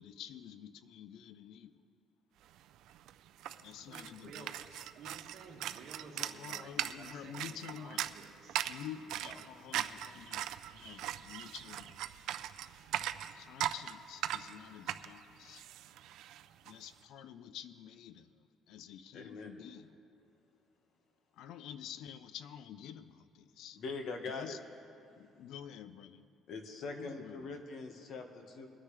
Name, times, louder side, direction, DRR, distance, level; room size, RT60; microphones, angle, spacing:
voice 1, 0.0-1.7 3.6-4.9 5.5-5.6 6.1-8.1 8.7-10.4 10.7-12.0 13.3-15.6 16.6-20.0 21.3-23.8 24.3-24.6 25.2-26.3 26.9-27.6, left 9 dB, 75° left, 13 dB, 0.5 m, -49 dB
sound 1, 2.6-2.7 2.9-16.7, right 12 dB, 75° right, 0.4 m, -40 dB
voice 2, 3.4-4.5 4.9-7.5 7.7-8.6 9.2-9.4, right 5 dB, 55° right, 0 dB, 1.7 m, -54 dB
voice 3, 19.1-19.5 23.7-24.6 26.5-28.7, left 3 dB, 55° left, 5 dB, 1.3 m, -42 dB
23.5 x 9.8 x 3.3 m, 2.5 s
cardioid pair, 135°, 0 cm